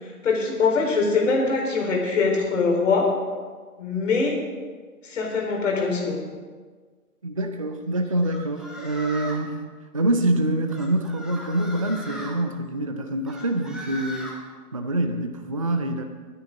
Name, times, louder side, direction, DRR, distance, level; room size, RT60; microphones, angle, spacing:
voice 1, 0.2-3.1 3.8-4.3 5.0-6.2, left 4 dB, 50° left, -1 dB, 4.2 m, -22 dB
voice 2, 7.2-9.6 9.9-14.3 14.7-16.0, right 1 dB, 25° right, 6 dB, 0.4 m, -25 dB
sound 1, 8.2-9.5 10.7-12.3 13.3-14.4, equal, ahead, 1.2 m, -38 dB
21.0 x 9.5 x 3.7 m, 1.5 s
figure-of-eight pair, 135°, 47 cm